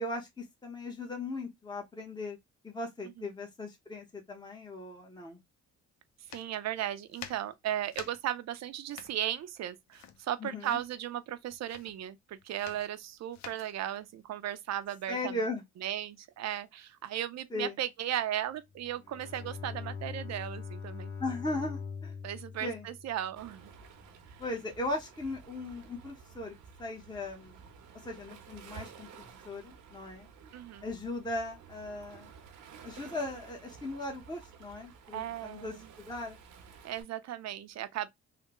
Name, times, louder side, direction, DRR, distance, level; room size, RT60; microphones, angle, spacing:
voice 1, 0.0-2.4 2.6-5.4 10.4-10.8 15.1-15.6 17.5-17.7 21.2-22.1 22.6-22.9 24.4-26.5 26.8-27.6 28.0-30.3 30.8-32.3 32.8-35.8 36.0-36.4, left 2 dB, 15° left, 0.9 m, -38 dB
sound 1, 6.2-15.5, left 9 dB, 65° left, 0.6 m, -50 dB
voice 2, 6.3-15.4 15.8-21.1 22.2-23.7 30.5-30.9 35.1-35.9 36.8-38.1, right 11 dB, 60° right, 0.6 m, -36 dB
Bowed string instrument, 18.7-23.9, left 5 dB, 45° left, 1.8 m, -43 dB
Waves surf, 23.4-37.0, right 6 dB, 80° right, 0.9 m, -53 dB
3.3 x 2.2 x 2.9 m
cardioid pair, 90°, 30 cm